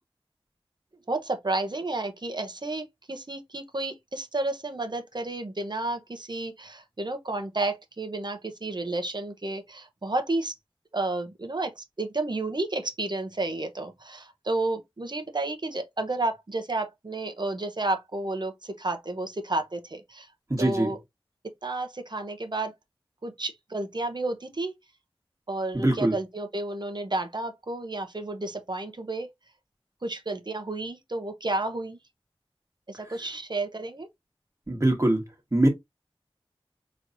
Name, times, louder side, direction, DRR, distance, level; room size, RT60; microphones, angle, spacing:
voice 1, 1.1-10.5 10.9-20.3 20.6-21.0 21.6-22.7 23.2-24.7 25.5-29.3 30.0-32.0 32.9-34.1, right 2 dB, 50° right, 0.9 m, -31 dB
voice 2, 20.5-20.9 25.7-26.1 34.7-35.2 35.5-35.7, right 1 dB, 30° right, 1.6 m, -22 dB
4.6 x 3.2 x 2.6 m
wide cardioid pair, 60°, 10 cm